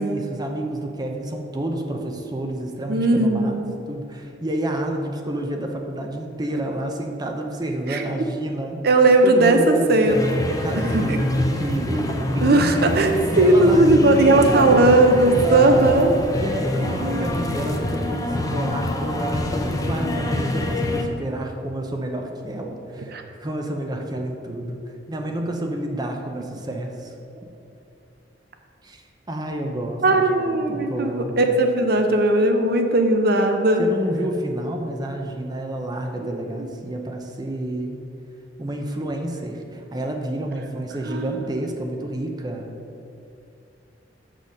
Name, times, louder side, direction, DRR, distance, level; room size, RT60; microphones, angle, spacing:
voice 1, 0.0-3.6 3.9-8.8 9.2-12.1 12.3-12.6 13.1-14.7 15.4-16.0 16.4-19.5 19.9-24.8 25.1-27.1 28.8-31.4 33.8-38.0 38.6-42.7, right 1 dB, 25° right, 2 dB, 0.7 m, -29 dB
voice 2, 2.9-3.8 7.9-8.1 8.8-10.3 10.8-11.2 12.4-16.1 16.8-17.4 23.1-23.2 30.0-33.9 41.1-41.4, right 2 dB, 60° right, 5 dB, 0.6 m, -18 dB
sound 1, 10.1-21.0, left 1 dB, 20° left, 0.7 m, -25 dB
6.7 x 6.4 x 5.4 m, 2.6 s
head